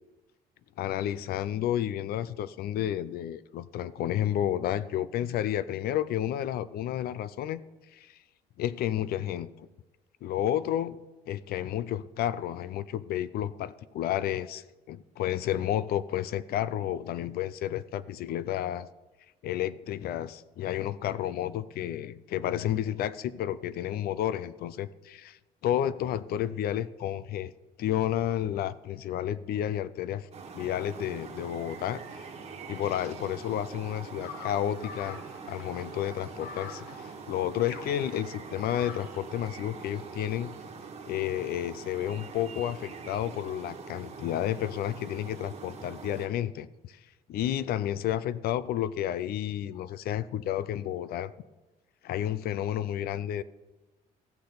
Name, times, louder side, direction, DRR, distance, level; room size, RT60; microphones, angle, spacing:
voice 1, 0.8-7.6 7.9-8.2 8.6-9.5 10.2-11.0 11.3-18.9 19.4-27.5 27.8-30.3 30.5-32.3 32.7-35.2 35.5-40.6 41.1-47.0 47.3-51.3 52.0-53.4, left 11 dB, 65° left, 17 dB, 0.5 m, -31 dB
sound 1, 30.3-46.3, right 5 dB, 40° right, 1.6 m, -44 dB
sound 2, 34.2-39.2, left 6 dB, 85° left, 1.1 m, -45 dB
14.5 x 6.7 x 4.0 m, 1.1 s
cardioid pair, 110°, 17 cm